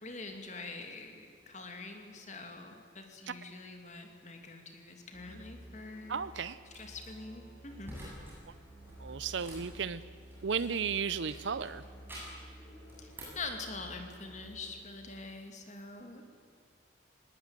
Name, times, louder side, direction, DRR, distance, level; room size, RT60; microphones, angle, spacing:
voice 1, 0.0-6.2 6.7-8.0 13.0-16.2, left 3 dB, 40° left, 5 dB, 2.7 m, -45 dB
Musical instrument, 5.1-14.9, equal, 10° left, 7.7 m, -52 dB
voice 2, 6.1-6.6 9.0-10.0 10.4-11.8, right 6 dB, 75° right, 15 dB, 0.6 m, -34 dB
sound 1, 6.7-7.1 7.8-8.4 8.7-10.8 11.3-12.5 12.9-13.5, right 1 dB, 10° right, 7.5 m, -49 dB
20.5 x 18.5 x 9.0 m, 2.2 s
head